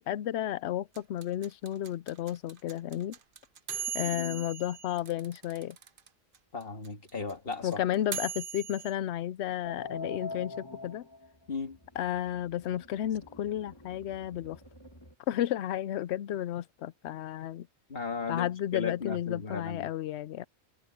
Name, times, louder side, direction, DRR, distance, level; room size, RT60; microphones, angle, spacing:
voice 1, 0.1-3.2 3.9-5.8 7.6-11.1 12.0-14.6 15.3-17.7 18.3-20.4, left 12 dB, 90° left, 0.9 m, -32 dB
sound 1, 0.9-6.1 6.3-6.4 6.6-8.9, right 8 dB, 55° right, 1.1 m, -39 dB
voice 2, 4.0-4.5 6.5-7.8 11.5-11.8 17.9-19.9, left 4 dB, 60° left, 2.2 m, -36 dB
sound 2, 9.6-15.1, left 2 dB, 20° left, 2.4 m, -45 dB
omnidirectional pair, 1.1 m